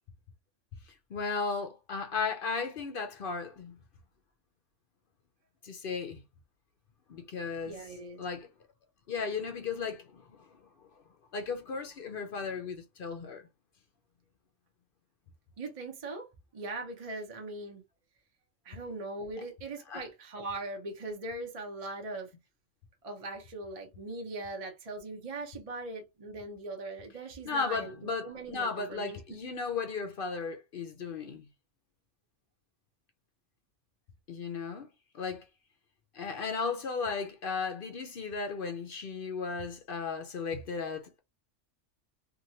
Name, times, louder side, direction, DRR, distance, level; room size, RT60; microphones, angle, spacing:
voice 1, 0.9-3.8 5.6-6.2 7.1-8.5 9.1-10.5 11.3-13.4 19.9-20.0 27.4-31.5 34.3-34.9 35.1-35.5 36.1-41.2, left 5 dB, 55° left, 0.7 m, -35 dB
voice 2, 7.6-8.2 15.6-16.3 16.5-17.8 18.6-22.3 23.0-29.4, right 2 dB, 35° right, 0.7 m, -40 dB
2.9 x 2.6 x 2.7 m
omnidirectional pair, 1.3 m